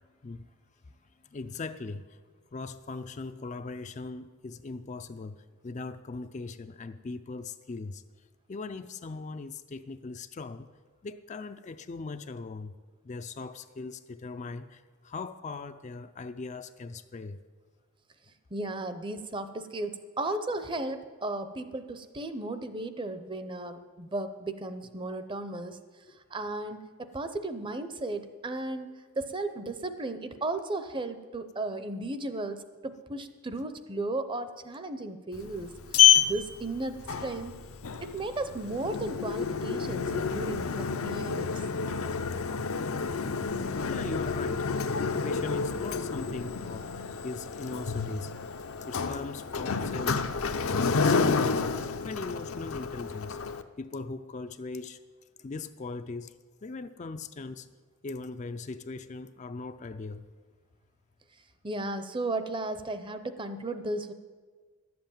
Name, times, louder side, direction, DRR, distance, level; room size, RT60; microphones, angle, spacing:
voice 1, 1.3-2.1 2.5-5.4 5.6-8.0 8.5-10.7 11.0-12.7 13.0-17.4 43.9-48.3 48.9-50.3 50.7-51.6 52.0-53.4 53.8-55.0 55.4-56.3 56.6-57.7 58.0-60.2, left 3 dB, 30° left, 0.4 m, -39 dB
voice 2, 18.5-25.8 26.3-28.9 29.2-35.7 36.2-37.5 38.0-41.5 61.6-64.1, right 2 dB, 20° right, 0.6 m, -35 dB
Sliding door, 35.3-53.6, left 6 dB, 70° left, 0.6 m, -29 dB
12.0 x 7.8 x 8.9 m
head